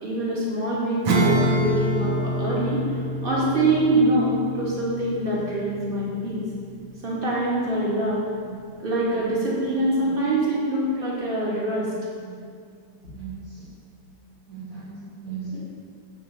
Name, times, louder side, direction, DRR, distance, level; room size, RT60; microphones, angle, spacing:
voice 1, 0.0-2.8 3.2-6.4 7.0-8.2 8.8-11.9, right 1 dB, 25° right, -6 dB, 2.8 m, -24 dB
Acoustic guitar / Strum, 1.0-7.1, right 1 dB, 75° right, 1.9 m, -27 dB
voice 2, 13.1-13.6 14.5-15.6, right 6 dB, 50° right, -8 dB, 2.6 m, -37 dB
14.5 x 5.0 x 7.3 m, 2.1 s
omnidirectional pair, 2.1 m